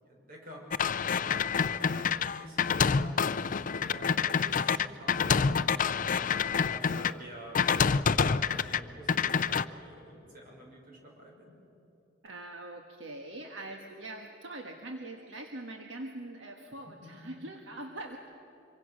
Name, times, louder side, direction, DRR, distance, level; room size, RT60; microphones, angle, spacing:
voice 1, 0.0-0.6 1.2-3.2 3.9-7.6 8.1-11.5 17.0-17.1, equal, 50° right, -1 dB, 6.0 m, -48 dB
sound 1, 0.7-7.1 7.5-8.8 9.1-9.6, left 6 dB, 45° left, 0.5 m, -27 dB
voice 2, 12.2-18.2, right 2 dB, 75° right, 3 dB, 1.5 m, -43 dB
25.5 x 24.0 x 6.4 m, 3.0 s
head